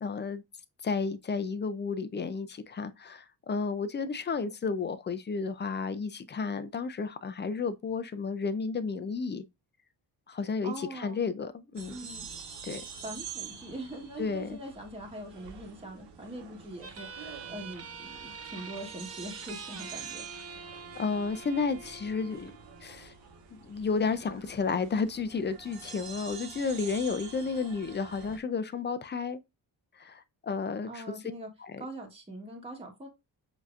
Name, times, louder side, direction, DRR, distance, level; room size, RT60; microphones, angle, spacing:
voice 1, 0.0-0.4 0.8-9.4 10.3-12.0 12.6-12.8 14.2-14.6 21.0-22.5 22.8-23.1 23.5-29.4 30.0-31.0 31.6-31.8, left 5 dB, 30° left, 0.4 m, -32 dB
voice 2, 10.6-11.2 11.9-12.3 13.0-20.3 30.9-31.5 31.8-33.1, right 1 dB, 15° right, 1.1 m, -42 dB
sound 1, 11.7-28.4, right 6 dB, 75° right, 1.3 m, -47 dB
sound 2, 16.8-23.8, right 5 dB, 35° right, 0.6 m, -45 dB
6.9 x 2.8 x 2.4 m
wide cardioid pair, 160°, 42 cm